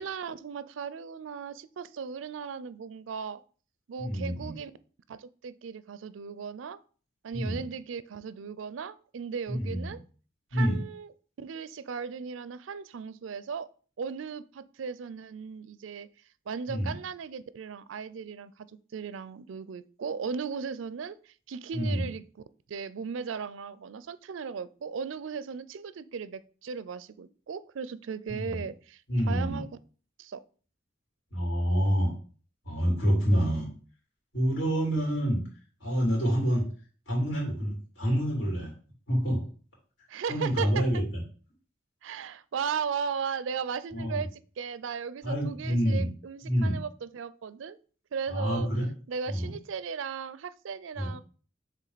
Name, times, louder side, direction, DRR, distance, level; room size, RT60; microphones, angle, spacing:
voice 1, 0.0-3.4 3.9-4.7 5.1-6.8 7.2-10.0 10.5-11.1 11.4-13.7 14.0-16.1 16.5-18.7 18.9-22.2 22.7-29.0 29.3-29.7 30.2-30.4 40.1-40.9 42.0-47.8 48.1-48.7 49.1-51.2, right 6 dB, 75° right, 16 dB, 0.4 m, -36 dB
voice 2, 4.0-4.5 7.3-7.6 9.5-10.0 10.5-10.8 16.7-16.9 21.7-22.1 28.3-28.6 29.1-29.6 31.3-32.1 32.6-33.7 34.3-35.4 35.8-36.6 37.1-38.7 39.1-39.5 40.3-41.0 43.9-44.2 45.2-46.1 46.4-46.8 48.3-48.9 49.3-49.5 50.9-51.1, equal, 65° left, -2 dB, 3.3 m, -27 dB
7.4 x 3.4 x 4.0 m, 0.41 s
head